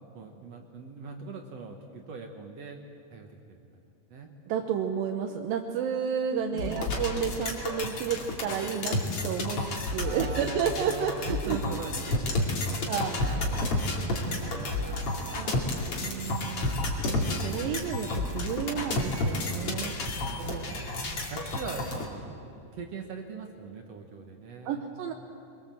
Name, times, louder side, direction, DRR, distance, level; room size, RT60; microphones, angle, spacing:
voice 1, 0.1-2.8 3.1-3.8 4.1-4.3 6.5-6.9 10.0-13.4 13.7-15.0 20.1-20.9 21.3-22.2 22.7-24.8, right 4 dB, 55° right, 3 dB, 2.1 m, -42 dB
voice 2, 4.5-9.0 9.2-11.6 12.9-13.6 14.2-15.7 16.0-20.1 20.4-20.7 24.7-25.1, right 7 dB, 90° right, 3 dB, 2.7 m, -32 dB
sound 1, 6.6-22.1, left 2 dB, 45° left, 3.2 m, -31 dB
23.5 x 23.0 x 7.6 m, 2.7 s
omnidirectional pair, 3.9 m